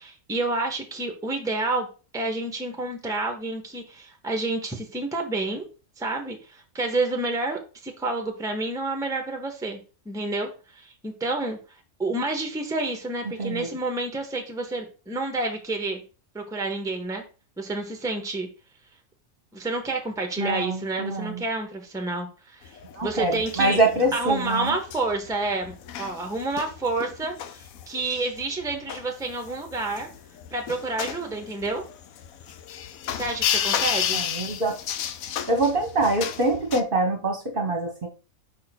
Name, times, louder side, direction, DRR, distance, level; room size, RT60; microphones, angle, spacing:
voice 1, 0.0-1.9 2.1-5.7 6.0-9.8 10.0-11.6 12.0-16.0 16.3-17.2 17.6-18.5 19.5-22.8 23.0-23.8 24.1-30.1 30.5-31.8 33.1-34.2, right 2 dB, 5° right, 4 dB, 1.0 m, -29 dB
voice 2, 13.4-13.7 20.4-21.4 22.9-24.8 34.1-34.8 35.5-38.1, right 2 dB, 40° right, 3 dB, 1.2 m, -25 dB
sound 1, 22.6-36.8, left 9 dB, 80° left, 1.1 m, -32 dB
5.2 x 3.8 x 5.9 m, 0.34 s
omnidirectional pair, 1.5 m